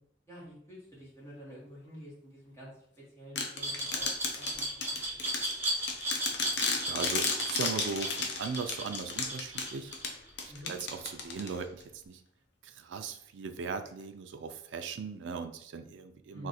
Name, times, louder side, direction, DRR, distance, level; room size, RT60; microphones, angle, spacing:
voice 1, 0.3-5.2 10.5-10.7 16.3-16.5, equal, 15° left, -8 dB, 1.3 m, -49 dB
sound 1, 3.4-11.8, left 4 dB, 70° left, 0.6 m, -34 dB
Glass, 3.6-10.4, right 1 dB, 10° right, 0.8 m, -35 dB
voice 2, 6.8-9.9 10.4-12.2 12.6-16.5, right 5 dB, 85° right, 8 dB, 0.4 m, -38 dB
2.6 x 2.5 x 4.1 m, 0.70 s
head